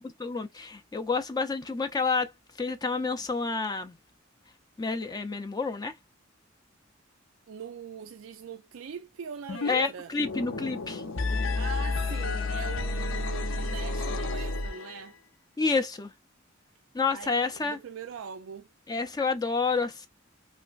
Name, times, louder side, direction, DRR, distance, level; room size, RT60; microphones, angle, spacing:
voice 1, 0.2-2.3 2.6-4.0 4.8-5.9 9.7-11.0 15.6-16.1 16.9-17.8 18.9-20.1, left 4 dB, 20° left, 0.4 m, -29 dB
voice 2, 7.5-10.1 11.5-15.2 17.1-18.7, right 7 dB, 80° right, 0.4 m, -42 dB
sound 1, 9.5-9.9 10.1-15.1, left 3 dB, 85° left, 0.7 m, -31 dB
3.2 x 3.0 x 2.4 m
head